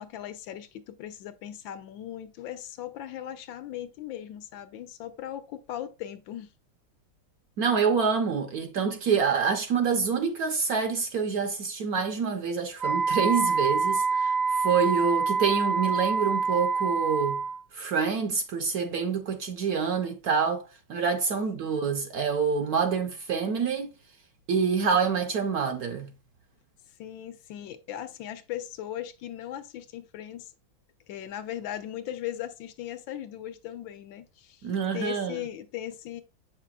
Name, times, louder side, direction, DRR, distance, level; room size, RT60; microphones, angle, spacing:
voice 1, 0.0-6.5 21.4-21.6 27.0-30.5 31.1-34.7 34.9-36.2, left 11 dB, 80° left, 1.4 m, -38 dB
voice 2, 7.6-17.4 17.7-20.6 20.9-23.9 24.5-26.1 34.6-35.4, right 6 dB, 60° right, 1.0 m, -27 dB
Wind instrument woodwind instrument, 12.8-17.6, right 4 dB, 80° right, 1.7 m, -26 dB
7.5 x 5.9 x 2.4 m
omnidirectional pair, 2.1 m